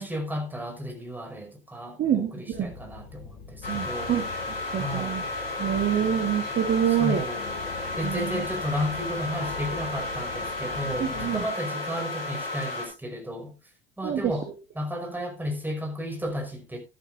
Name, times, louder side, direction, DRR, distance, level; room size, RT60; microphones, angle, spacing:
voice 1, 0.0-4.1 4.7-5.3 6.9-7.4 8.0-13.5 14.0-14.5 14.8-16.8, equal, 5° right, 5.2 m, -33 dB
voice 2, 2.0-2.7 3.7-5.2 5.6-7.2 8.0-8.4 11.0-11.4 14.0-14.4, right 9 dB, 40° right, 2.0 m, -27 dB
sound 1, 2.5-11.5, left 6 dB, 55° left, 3.0 m, -42 dB
sound 2, 3.6-12.9, left 2 dB, 80° left, 5.1 m, -33 dB
13.0 x 13.0 x 2.5 m
figure-of-eight pair, 70°, 29 cm